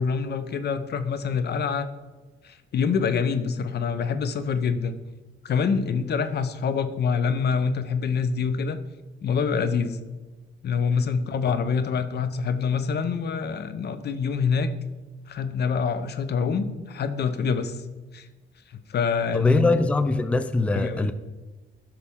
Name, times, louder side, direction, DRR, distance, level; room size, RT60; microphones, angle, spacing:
voice 1, 0.0-1.9 2.4-5.0 5.4-8.8 9.2-10.0 10.6-14.7 15.3-17.8 18.1-18.3 18.7-19.7 20.7-21.1, left 5 dB, 55° left, 11 dB, 0.7 m, -26 dB
voice 2, 19.3-21.1, left 2 dB, 5° left, 11 dB, 0.4 m, -22 dB
9.6 x 5.8 x 3.7 m, 1.2 s
cardioid pair, 90°, 20 cm